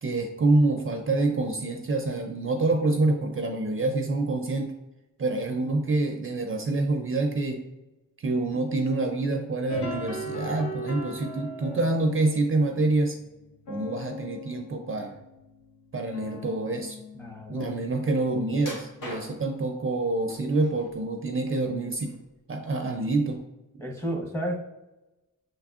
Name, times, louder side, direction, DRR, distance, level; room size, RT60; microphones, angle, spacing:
voice 1, 0.0-4.7 5.2-7.6 8.2-13.2 13.7-15.2 15.9-17.0 17.5-22.1 22.5-23.4, right 2 dB, 40° right, 4 dB, 0.5 m, -26 dB
sound 1, 9.7-17.9, left 1 dB, 60° left, 0.8 m, -39 dB
voice 2, 17.1-17.7 23.8-24.6, right 1 dB, 10° left, 1 dB, 0.8 m, -32 dB
sound 2, 18.6-19.6 20.3-21.0 21.4-22.3 22.6-22.8 23.4-23.5, left 1 dB, 90° left, 1.4 m, -41 dB
6.3 x 3.5 x 2.4 m, 0.99 s
wide cardioid pair, 130°, 32 cm